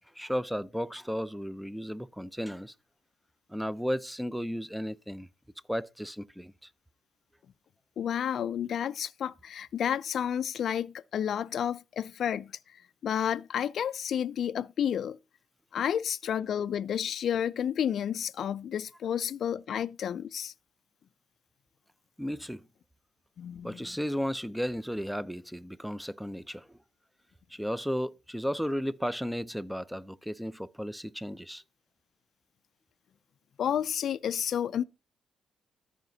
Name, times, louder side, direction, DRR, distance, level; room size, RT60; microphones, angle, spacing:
voice 1, 0.2-2.7 3.5-5.3 5.7-6.7 22.2-22.7 23.6-26.8 27.5-31.6, equal, ahead, 0.5 m, -34 dB
voice 2, 8.0-12.5 13.0-15.2 15.7-20.5 23.4-23.8 33.6-34.8, left 9 dB, 60° left, 0.3 m, -31 dB
13.5 x 5.0 x 2.7 m
cardioid pair, 90°, 0 cm